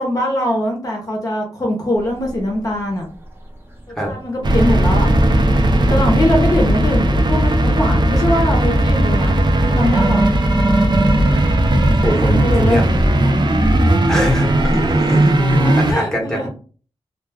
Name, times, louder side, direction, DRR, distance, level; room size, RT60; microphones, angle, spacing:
voice 1, 0.0-3.1 3.9-5.1 5.9-9.4 9.7-10.3 12.3-12.8 13.2-13.5 15.9-16.5, left 1 dB, 35° left, 0 dB, 0.7 m, -21 dB
sound 1, 2.0-15.7, right 1 dB, 20° right, 0.9 m, -36 dB
sound 2, 4.4-15.9, right 1 dB, 45° right, 0.5 m, -16 dB
voice 2, 5.7-6.3 10.9-11.4 12.0-12.8 14.1-16.5, equal, 5° left, 1 dB, 0.9 m, -23 dB
2.3 x 2.3 x 3.3 m, 0.39 s
wide cardioid pair, 90°, 11 cm